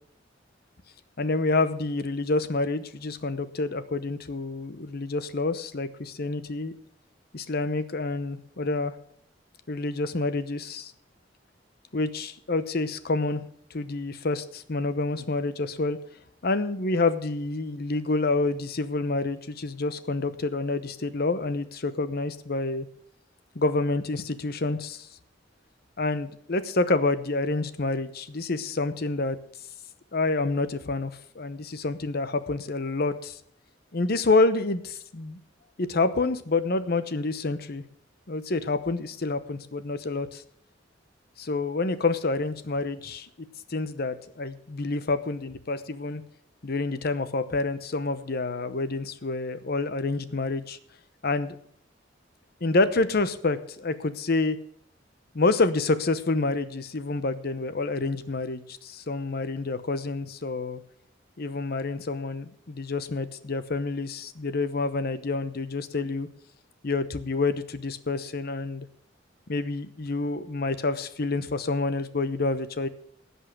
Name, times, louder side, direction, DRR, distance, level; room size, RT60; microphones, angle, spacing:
voice 1, 1.2-6.7 7.3-8.9 9.7-10.9 11.9-13.4 13.7-16.0 16.4-22.9 23.5-25.1 26.0-29.4 30.1-33.4 33.9-35.4 35.8-37.8 38.3-40.4 41.4-43.3 43.7-46.2 46.6-50.8 51.2-51.6 52.6-54.6 55.3-60.8 61.4-66.3 66.8-68.9 69.5-72.9, left 3 dB, 55° left, 12 dB, 0.9 m, -28 dB
16.0 x 5.6 x 7.8 m, 0.66 s
head